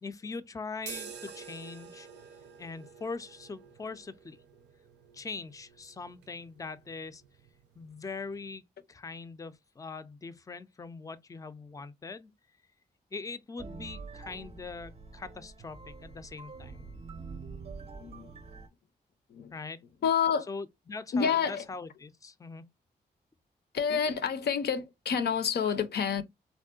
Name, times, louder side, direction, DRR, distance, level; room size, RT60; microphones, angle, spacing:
voice 1, 0.0-2.1 2.6-4.4 5.1-7.2 7.8-8.6 8.9-12.3 13.1-16.8 19.5-19.8 20.5-22.6, left 4 dB, 20° left, 0.4 m, -42 dB
sound 1, 0.8-8.6, right 7 dB, 85° right, 0.5 m, -50 dB
sound 2, 13.6-18.7, right 4 dB, 35° right, 0.5 m, -45 dB
voice 2, 18.0-18.3 19.3-19.5 20.0-20.5 21.1-21.6 23.7-26.2, left 7 dB, 70° left, 0.5 m, -28 dB
3.6 x 2.1 x 2.4 m
cardioid pair, 60°, 18 cm